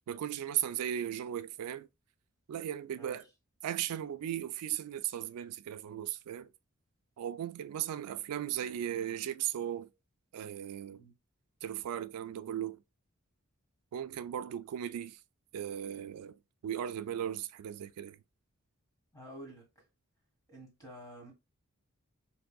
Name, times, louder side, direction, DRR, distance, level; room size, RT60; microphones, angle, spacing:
voice 1, 0.1-1.9 2.5-3.2 3.6-6.5 7.2-9.9 10.3-11.0 11.6-12.8 13.9-15.2 15.5-18.2, right 10 dB, 85° right, 0.3 m, -37 dB
voice 2, 2.9-3.2 10.9-11.1 19.1-19.8 20.5-21.3, right 1 dB, 15° left, 1.5 m, -50 dB
3.6 x 2.6 x 2.2 m
head